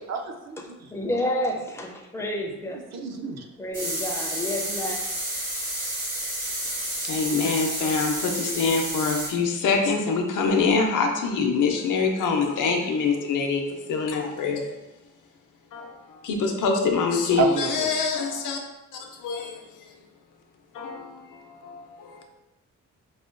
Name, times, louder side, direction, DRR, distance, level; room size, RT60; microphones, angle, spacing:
voice 1, 0.1-0.9 2.6-3.5 17.4-17.9, right 6 dB, 60° right, 5 dB, 0.4 m, -29 dB
voice 2, 0.9-2.8 3.6-5.0, left 1 dB, 10° left, 0 dB, 0.4 m, -29 dB
sound 1, 3.7-9.3, right 1 dB, 85° right, 1.3 m, -30 dB
voice 3, 7.0-14.8 15.7-18.6 18.9-19.9 20.7-22.3, left 4 dB, 85° left, 3 dB, 0.6 m, -25 dB
4.9 x 2.2 x 2.4 m, 0.98 s
wide cardioid pair, 165°, 31 cm